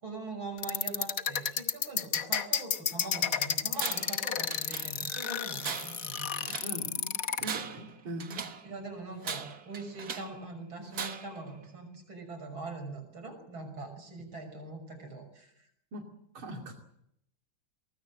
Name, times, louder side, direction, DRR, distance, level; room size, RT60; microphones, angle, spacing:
voice 1, 0.0-6.6 8.6-15.5, right 2 dB, 70° right, 6 dB, 6.8 m, -42 dB
sound 1, 0.6-7.5, left 8 dB, 50° left, 1.2 m, -31 dB
Tools, 3.8-4.2 4.5-5.2 5.6-6.8 7.3-8.7 9.2-10.4 10.9-11.4, right 6 dB, 50° right, 1.8 m, -39 dB
voice 2, 6.6-8.4 15.9-16.0 16.3-16.7, right 1 dB, 90° right, 1 dB, 3.6 m, -41 dB
24.0 x 20.0 x 7.7 m, 0.75 s
omnidirectional pair, 2.2 m